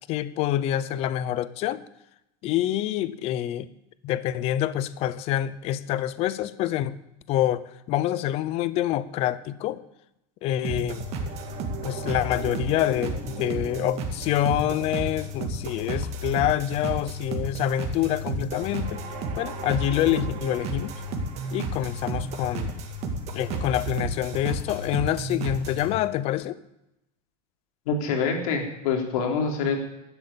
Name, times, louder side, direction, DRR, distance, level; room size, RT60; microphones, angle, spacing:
voice 1, 0.1-1.8 2.4-3.7 4.0-7.0 7.3-9.8 10.4-11.0 11.8-19.0 19.4-20.9 21.5-22.8 23.3-26.6, left 12 dB, 35° left, 16 dB, 0.7 m, -26 dB
sound 1, 10.6-25.9, right 2 dB, 35° right, 2.1 m, -32 dB
voice 2, 27.9-29.8, left 5 dB, 80° left, 2 dB, 3.7 m, -25 dB
12.0 x 10.5 x 8.6 m, 0.87 s
supercardioid pair, 175°, 18 cm